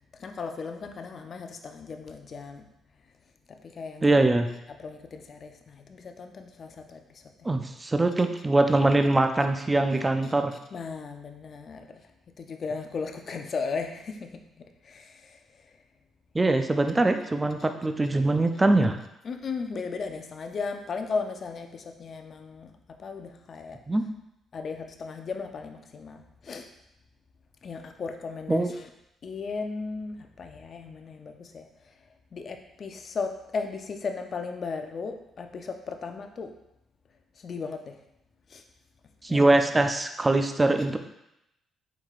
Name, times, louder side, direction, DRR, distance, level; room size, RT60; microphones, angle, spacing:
voice 1, 0.2-2.6 3.5-4.1 4.8-7.2 10.7-12.0 12.4-14.3 14.8-15.4 19.2-22.7 23.0-23.8 24.5-26.7 27.6-28.9 29.2-31.7 32.3-36.5 37.4-38.0 38.5-38.6 39.3-39.5, left 4 dB, 50° left, 5 dB, 0.4 m, -36 dB
voice 2, 4.0-4.5 7.4-10.5 16.3-19.0 23.9-24.0 28.5-28.7 39.2-41.0, right 2 dB, 20° right, 7 dB, 0.3 m, -22 dB
4.6 x 3.8 x 2.4 m, 0.84 s
cardioid pair, 90°, 0 cm